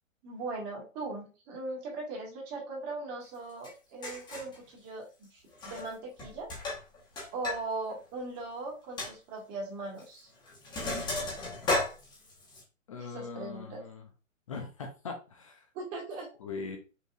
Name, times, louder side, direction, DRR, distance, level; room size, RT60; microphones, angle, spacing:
voice 1, 0.2-6.5 7.3-10.3 13.0-13.8 15.7-16.3, right 3 dB, 25° right, -2 dB, 1.7 m, -39 dB
Sink (filling or washing), 3.6-3.7 4.0-4.6 5.5-5.9 6.2-7.6 7.9-8.0 8.4-8.5 9.0-9.1 10.0-10.2 10.5-12.6, left 2 dB, 10° left, 1.0 m, -34 dB
voice 2, 12.9-14.1 14.5-15.7 16.4-16.8, left 4 dB, 25° left, 4 dB, 0.4 m, -40 dB
5.4 x 3.0 x 2.4 m, 0.33 s
hypercardioid pair, 145°, 40 cm